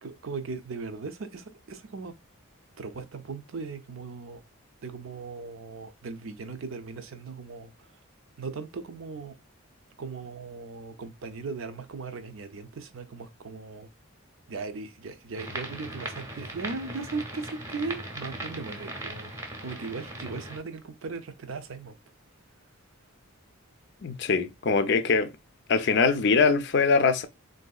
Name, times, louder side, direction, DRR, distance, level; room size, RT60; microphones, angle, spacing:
voice 1, 0.0-2.1 2.8-4.4 4.8-7.9 8.4-9.3 10.0-13.9 14.5-19.3 19.6-22.0, right 4 dB, 65° right, 0.5 m, -38 dB
sound 1, 15.3-20.6, right 1 dB, 15° right, 0.7 m, -38 dB
voice 2, 24.0-25.3 25.7-27.2, left 4 dB, 50° left, 0.4 m, -22 dB
3.9 x 2.6 x 2.3 m
head